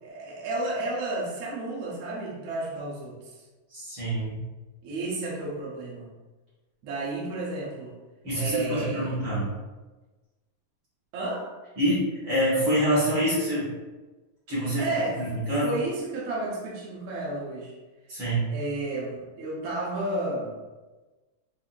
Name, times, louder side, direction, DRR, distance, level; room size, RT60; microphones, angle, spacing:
voice 1, 0.0-3.2 4.8-6.1 6.8-8.0 8.3-9.2 11.1-11.5 14.8-17.7 18.5-20.5, right 2 dB, 65° right, -5 dB, 1.9 m, -32 dB
voice 2, 3.7-4.4 8.2-9.6 11.8-13.7 14.5-14.8 15.2-15.7 18.1-18.5, equal, 50° right, -10 dB, 1.7 m, -26 dB
5.6 x 2.7 x 2.5 m, 1.2 s
omnidirectional pair, 3.4 m